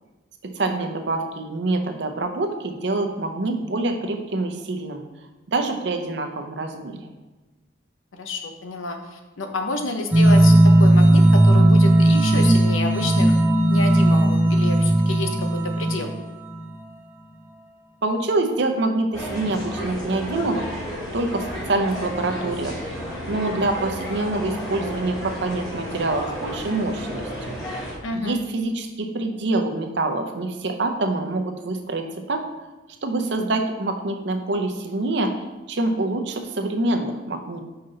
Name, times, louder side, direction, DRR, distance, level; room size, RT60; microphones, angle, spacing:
voice 1, 0.4-5.0 5.5-7.0 18.0-20.7 21.1-22.8 23.3-27.3 28.2-32.0 32.3-32.4 33.0-35.4 35.7-37.6, right 2 dB, 60° right, 4 dB, 0.7 m, -25 dB
voice 2, 8.2-13.3 13.7-16.1 28.0-28.4, left 2 dB, 85° left, 5 dB, 0.8 m, -29 dB
sound 1, 10.1-16.7, right 1 dB, 10° right, 0.4 m, -16 dB
sound 2, 19.1-27.9, equal, 20° left, 1.6 m, -32 dB
5.6 x 5.3 x 3.9 m, 1.2 s
head